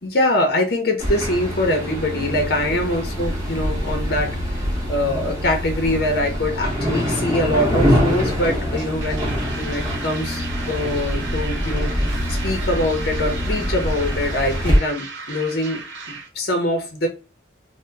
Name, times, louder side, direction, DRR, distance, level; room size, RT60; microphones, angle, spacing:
voice 1, 0.0-15.8 16.1-17.1, left 1 dB, 55° left, 4 dB, 0.7 m, -24 dB
sound 1, 1.0-14.8, equal, 15° right, 0.9 m, -24 dB
sound 2, 8.7-16.3, right 4 dB, 75° right, 0.7 m, -35 dB
2.8 x 2.1 x 3.4 m, 0.31 s
head